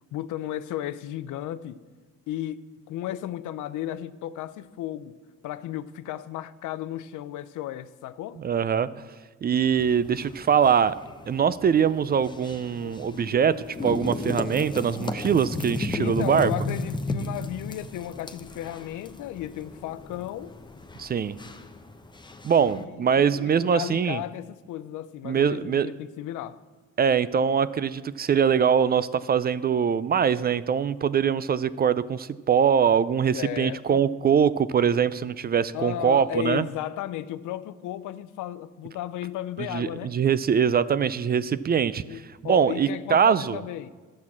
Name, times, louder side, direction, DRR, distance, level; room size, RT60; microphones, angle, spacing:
voice 1, 0.1-1.8 2.3-2.6 2.9-5.2 5.4-8.4 16.0-20.5 22.6-26.6 33.3-34.1 35.7-40.2 41.4-41.5 42.0-43.9, left 12 dB, 85° left, 0.5 m, -34 dB
voice 2, 8.4-8.9 9.4-11.0 11.3-13.6 13.8-16.5 21.0-21.4 22.4-24.2 25.2-25.9 27.0-36.6 39.6-43.6, right 7 dB, 35° right, 0.4 m, -23 dB
sound 1, 9.6-22.8, left 2 dB, 15° left, 0.7 m, -35 dB
sound 2, 12.8-21.7, left 8 dB, 65° left, 1.1 m, -49 dB
11.5 x 6.3 x 7.3 m
cardioid pair, 90°, 30 cm